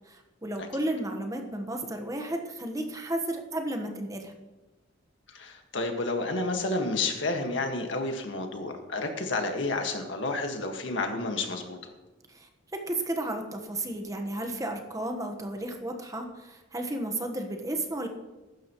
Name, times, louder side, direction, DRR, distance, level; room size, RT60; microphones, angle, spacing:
voice 1, 0.1-4.3 12.3-18.1, right 1 dB, 15° right, 4 dB, 1.3 m, -33 dB
voice 2, 5.3-11.8, left 2 dB, 70° left, 4 dB, 1.8 m, -30 dB
15.5 x 12.5 x 3.1 m, 1.1 s
head